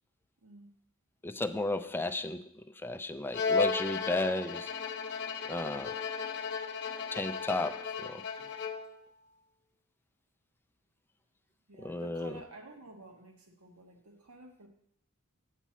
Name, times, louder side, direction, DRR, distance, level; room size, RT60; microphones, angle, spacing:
voice 1, 1.2-4.7 5.5-5.9 7.1-8.2 11.8-12.3, left 2 dB, 10° left, 9 dB, 0.4 m, -34 dB
Bowed string instrument, 3.3-9.0, left 5 dB, 50° left, 0.7 m, -34 dB
voice 2, 11.7-14.7, right 2 dB, 75° right, 3 dB, 1.4 m, -51 dB
8.2 x 4.4 x 7.3 m, 0.73 s
head